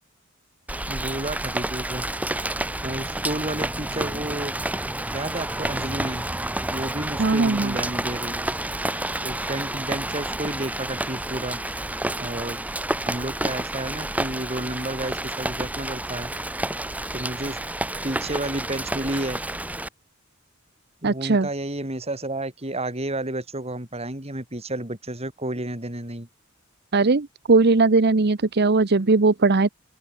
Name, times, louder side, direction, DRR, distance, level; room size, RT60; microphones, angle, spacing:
Rain, 0.7-19.9, right 1 dB, 5° right, 1.4 m, -30 dB
voice 1, 0.9-2.1 2.8-4.5 5.1-6.2 6.7-8.5 9.2-11.6 12.2-12.6 13.1-16.3 17.1-17.6 18.0-19.4 21.0-26.3, right 1 dB, 30° right, 5.2 m, -31 dB
voice 2, 7.2-7.8 21.0-21.5 26.9-29.7, right 3 dB, 50° right, 0.9 m, -19 dB
open air
head